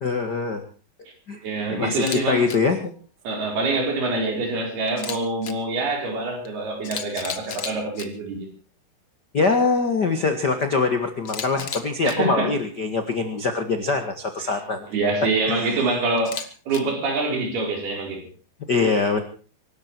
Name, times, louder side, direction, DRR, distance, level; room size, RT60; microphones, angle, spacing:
voice 1, 0.0-0.6 1.3-1.4 1.7-2.9 9.3-14.9 15.5-15.7 18.7-19.2, left 4 dB, 60° left, 1.0 m, -23 dB
voice 2, 1.4-2.5 3.2-8.5 12.0-12.5 14.5-14.6 14.9-18.2, right 2 dB, 65° right, 6.2 m, -25 dB
Camera, 1.9-2.2 2.5-2.6 4.9-5.5 6.4-6.5 6.8-8.1 11.2-12.1 16.2-16.8, left 7 dB, 80° left, 1.0 m, -33 dB
25.0 x 12.5 x 4.5 m
omnidirectional pair, 4.8 m